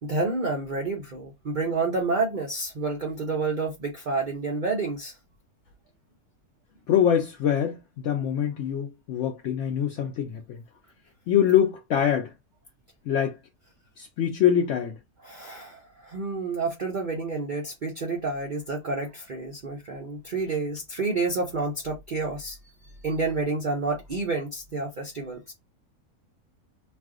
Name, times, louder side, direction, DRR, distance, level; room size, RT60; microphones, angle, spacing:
voice 1, 0.0-5.1 15.2-22.6 23.0-25.5, right 3 dB, 85° right, 0.4 m, -29 dB
voice 2, 6.9-10.6 11.3-12.3 13.0-13.4 14.0-15.0, left 9 dB, 70° left, 0.7 m, -24 dB
2.4 x 2.4 x 3.5 m
omnidirectional pair, 1.7 m